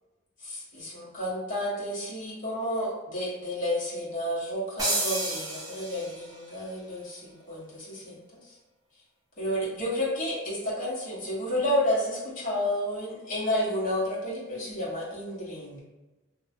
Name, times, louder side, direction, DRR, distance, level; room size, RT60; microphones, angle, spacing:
voice 1, 0.4-8.2 9.4-15.8, left 1 dB, 40° left, -6 dB, 1.0 m, -31 dB
sound 1, 4.8-6.4, right 2 dB, 20° right, 0.7 m, -30 dB
3.1 x 2.3 x 2.6 m, 1.1 s
head